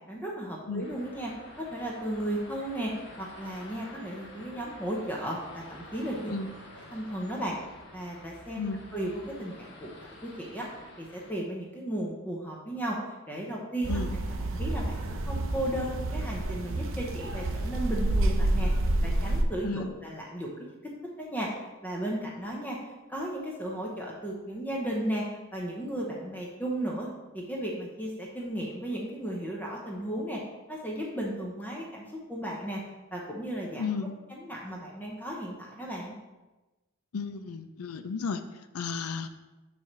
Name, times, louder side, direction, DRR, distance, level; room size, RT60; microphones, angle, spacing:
voice 1, 0.1-1.3 1.6-6.3 6.9-7.6 7.9-9.9 10.2-10.7 11.0-13.0 13.3-14.0 14.5-18.7 19.0-20.5 20.8-20.9 21.2-21.5 21.8-22.8 23.1-25.2 25.5-27.1 27.3-30.4 30.7-32.8 33.1-33.9 34.3-36.1, right 1 dB, 10° left, -3 dB, 0.8 m, -35 dB
sound 1, 0.8-11.3, left 1 dB, 55° left, 1.4 m, -49 dB
sound 2, 13.8-19.4, right 1 dB, 65° right, 0.6 m, -28 dB
voice 2, 19.6-19.9 33.8-34.2 37.1-38.4 38.7-39.3, left 4 dB, 85° left, 10 dB, 0.5 m, -33 dB
7.0 x 3.3 x 6.0 m, 1.1 s
head